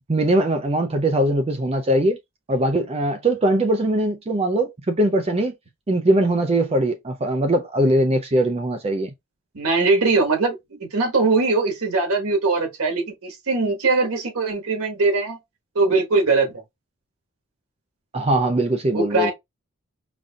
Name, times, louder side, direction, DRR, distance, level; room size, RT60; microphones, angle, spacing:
voice 1, 0.1-2.2 2.5-5.5 5.9-9.1 18.1-19.3, right 1 dB, 25° right, 0.4 m, -21 dB
voice 2, 9.5-15.4 15.7-16.5 18.9-19.3, right 3 dB, 85° right, 1.4 m, -21 dB
5.1 x 2.6 x 2.3 m
head